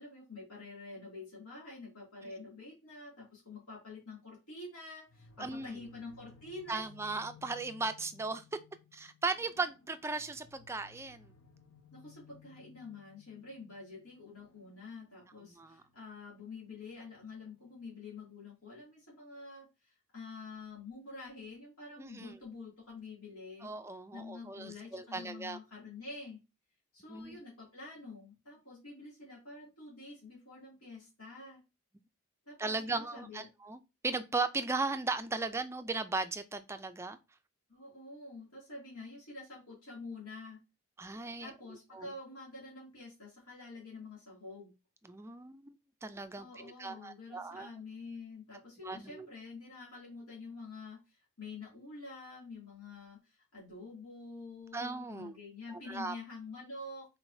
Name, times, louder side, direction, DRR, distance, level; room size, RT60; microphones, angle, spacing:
voice 1, 0.0-6.8 11.9-23.7 24.1-26.4 26.9-31.6 32.5-33.5 37.7-40.6 41.4-44.7 46.4-57.1, left 3 dB, 85° left, 2.4 m, -48 dB
sound 1, 5.1-17.9, left 6 dB, 65° left, 0.7 m, -61 dB
voice 2, 5.4-5.8 6.7-8.4 8.9-11.3 15.6-15.8 22.0-22.3 23.6-25.6 27.1-27.4 32.6-37.2 41.0-41.5 41.9-42.1 45.1-45.7 46.0-47.7 48.8-49.3 54.7-55.4 55.7-56.1, right 3 dB, 10° right, 0.3 m, -37 dB
4.7 x 4.1 x 2.6 m
head